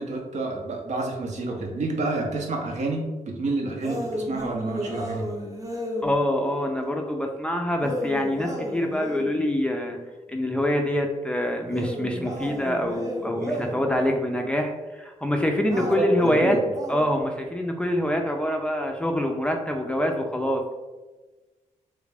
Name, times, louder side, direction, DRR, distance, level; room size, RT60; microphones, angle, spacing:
voice 1, 0.0-5.3 15.7-16.6, right 2 dB, 65° right, 1 dB, 0.7 m, -29 dB
sound 1, 3.8-6.2 7.8-9.4 11.6-13.9 15.7-17.2, equal, 25° right, 0.7 m, -33 dB
voice 2, 6.0-10.0 10.3-16.6 16.9-20.7, left 1 dB, 10° left, 2 dB, 0.4 m, -25 dB
3.1 x 2.4 x 3.3 m, 1.2 s
cardioid pair, 95°, 13 cm